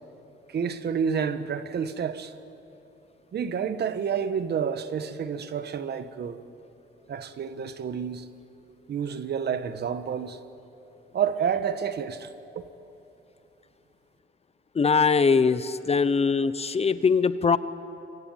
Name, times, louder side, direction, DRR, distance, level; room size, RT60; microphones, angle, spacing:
voice 1, 0.5-2.3 3.3-6.4 7.1-8.3 8.9-10.4 11.1-12.7, right 7 dB, 55° right, 1.3 m, -29 dB
voice 2, 14.7-17.6, left 5 dB, 30° left, 0.9 m, -22 dB
25.5 x 23.5 x 9.1 m
cardioid pair, 90°, 20 cm